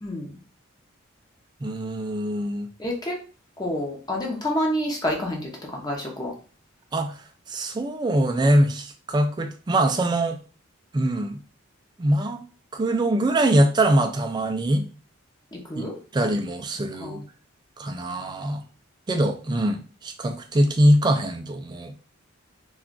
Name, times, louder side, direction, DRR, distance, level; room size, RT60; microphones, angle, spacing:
voice 1, 0.0-0.4 2.8-3.2 3.6-6.3 15.5-16.0 17.0-17.2, left 1 dB, 20° left, -1 dB, 0.6 m, -28 dB
voice 2, 1.6-2.7 6.9-7.2 7.5-10.4 10.9-11.4 12.0-12.4 12.7-14.9 15.8-15.9 16.1-17.2 17.8-18.6 19.1-21.9, right 1 dB, 20° right, 6 dB, 0.3 m, -23 dB
2.4 x 2.3 x 3.7 m, 0.36 s
head